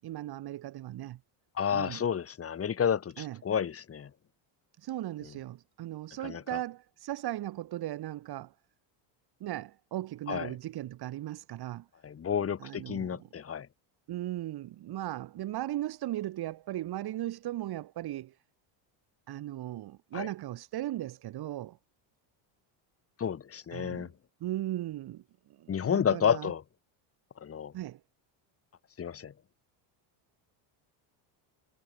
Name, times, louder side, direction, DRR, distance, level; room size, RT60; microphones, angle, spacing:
voice 1, 0.0-1.2 1.7-2.0 3.2-3.4 4.8-8.5 9.4-11.9 12.6-13.3 14.1-18.4 19.3-21.8 23.7-24.1 24.4-25.2 25.6-26.5 27.7-28.0, right 14 dB, 50° right, 7.6 m, -37 dB
voice 2, 1.6-4.1 6.2-6.6 10.3-10.6 12.0-13.7 20.1-20.3 23.2-24.1 25.7-26.6 27.4-27.7 29.0-29.3, left 8 dB, 25° left, 5.9 m, -30 dB
cardioid pair, 160°, 49 cm